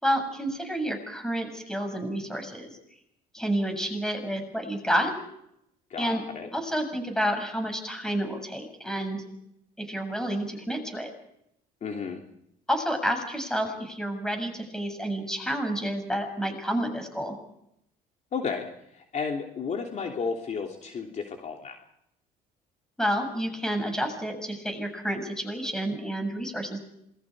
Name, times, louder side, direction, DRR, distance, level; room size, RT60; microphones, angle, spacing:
voice 1, 0.0-2.7 3.3-5.1 6.0-6.2 6.5-9.2 9.8-11.1 12.7-17.4 23.0-26.8, equal, 5° left, 5 dB, 7.4 m, -29 dB
voice 2, 5.9-6.5 11.8-12.2 18.3-18.7 18.9-21.8, left 5 dB, 45° left, 2 dB, 3.1 m, -32 dB
27.5 x 22.0 x 4.9 m, 0.75 s
cardioid pair, 110°, 17 cm